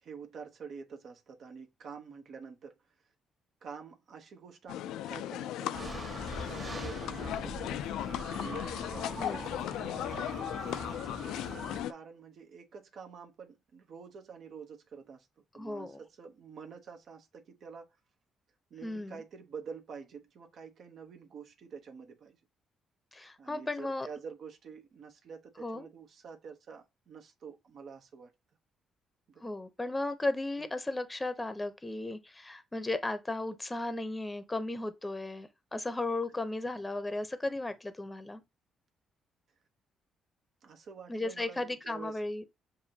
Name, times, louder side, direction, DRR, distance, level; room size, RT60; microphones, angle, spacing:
voice 1, 0.0-2.8 3.6-7.9 8.3-9.2 9.8-15.3 15.5-17.9 18.7-22.4 23.4-28.3 29.3-29.4 40.6-42.2, right 6 dB, 65° right, 0.9 m, -48 dB
sound 1, 4.7-11.9, left 12 dB, 90° left, 0.3 m, -37 dB
sound 2, 5.7-11.8, right 1 dB, 35° right, 1.5 m, -42 dB
voice 2, 15.5-16.0 18.8-19.2 23.1-24.1 25.6-25.9 29.4-38.4 41.1-42.4, left 2 dB, 15° left, 0.7 m, -35 dB
7.0 x 2.6 x 2.8 m
cardioid pair, 90°, 0 cm